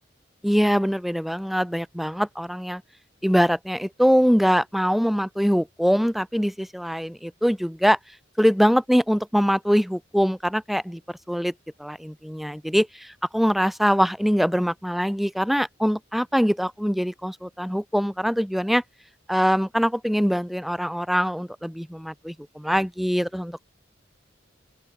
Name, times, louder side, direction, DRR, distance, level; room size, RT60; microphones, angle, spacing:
voice 1, 0.4-2.8 3.2-8.0 8.4-11.0 11.3-11.5 11.8-12.9 13.3-18.8 19.3-23.7, equal, ahead, 4.3 m, -23 dB
open air
head